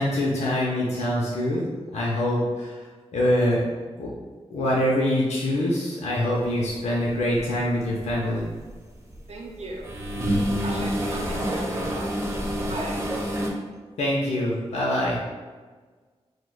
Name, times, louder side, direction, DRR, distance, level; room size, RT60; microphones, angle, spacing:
voice 1, 0.0-1.6 1.9-2.8 3.1-3.6 4.0-4.1 4.5-8.5 14.0-15.2, left 1 dB, 80° left, -4 dB, 0.5 m, -24 dB
washing machine close, 7.1-7.4 7.8-9.2 9.6-13.5, equal, 25° right, 0.6 m, -27 dB
voice 2, 9.3-9.9 10.6-12.2 12.6-13.1, right 2 dB, 70° right, -1 dB, 0.6 m, -37 dB
4.5 x 2.1 x 2.2 m, 1.4 s
cardioid pair, 60°, 11 cm